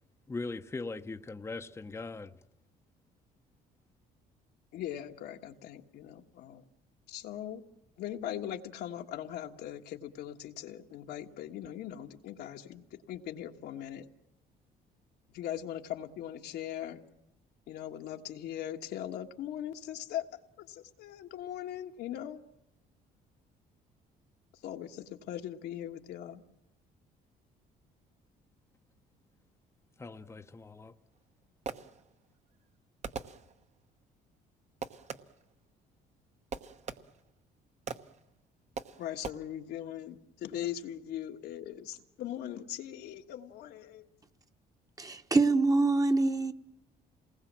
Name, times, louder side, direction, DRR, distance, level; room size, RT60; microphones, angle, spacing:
voice 1, 0.3-2.3 30.0-30.9, left 3 dB, 15° left, 0.8 m, -40 dB
voice 2, 4.7-6.6 7.1-7.6 8.0-14.1 15.3-17.0 17.7-20.2 20.6-22.4 24.6-26.4 39.0-44.1, left 11 dB, 75° left, 1.5 m, -40 dB
Fireworks, 31.1-32.3 33.0-33.9 34.8-35.5 36.5-37.4 37.9-38.3 38.7-39.3, right 5 dB, 40° right, 1.1 m, -42 dB
voice 3, 45.0-46.5, right 3 dB, 20° right, 1.2 m, -25 dB
27.5 x 20.0 x 7.5 m
cardioid pair, 110°, 17 cm